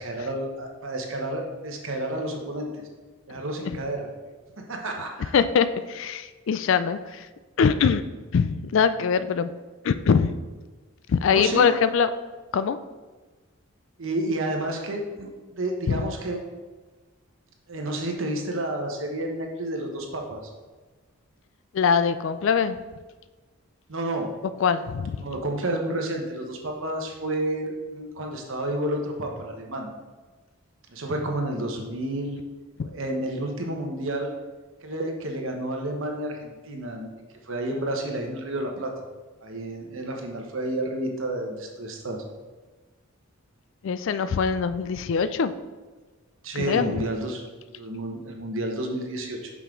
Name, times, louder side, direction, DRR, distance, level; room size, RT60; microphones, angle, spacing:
voice 1, 0.0-2.7 3.3-4.1 4.7-5.3 11.3-11.7 14.0-16.4 17.7-20.4 23.9-24.3 25.2-29.9 30.9-32.4 32.8-34.3 34.8-37.1 37.5-38.9 39.4-42.2 46.4-47.4 47.7-49.5, right 1 dB, 60° right, 2 dB, 1.0 m, -30 dB
voice 2, 5.3-7.3 7.6-8.0 8.3-9.5 9.8-10.3 11.1-12.1 12.5-12.8 15.9-16.0 21.7-22.8 24.6-25.2 32.8-32.9 43.8-45.5 46.5-46.9, left 6 dB, 60° left, 12 dB, 0.3 m, -22 dB
6.1 x 5.6 x 3.7 m, 1.3 s
head